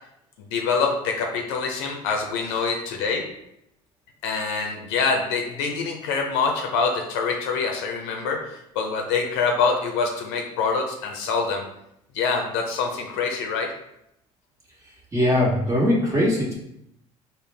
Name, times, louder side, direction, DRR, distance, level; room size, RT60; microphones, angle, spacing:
voice 1, 0.4-3.3 4.2-11.6 12.1-13.7, left 5 dB, 85° left, 2 dB, 0.5 m, -25 dB
voice 2, 15.1-16.6, left 1 dB, 25° right, -3 dB, 1.2 m, -21 dB
3.9 x 2.1 x 3.3 m, 0.79 s
supercardioid pair, 90°, 13 cm